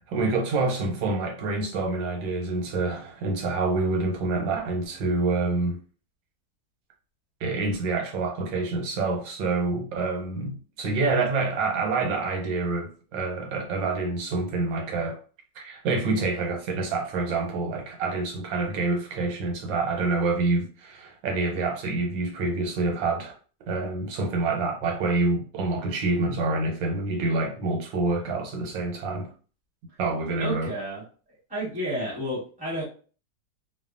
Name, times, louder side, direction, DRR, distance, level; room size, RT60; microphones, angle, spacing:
voice 1, 0.1-5.8 7.4-15.2 15.6-23.4 23.7-29.3 30.0-30.7, right 3 dB, 90° right, 1.5 m, -27 dB
voice 2, 30.4-31.0 31.5-32.8, equal, 5° right, 1.0 m, -31 dB
3.0 x 2.1 x 2.4 m
omnidirectional pair, 2.0 m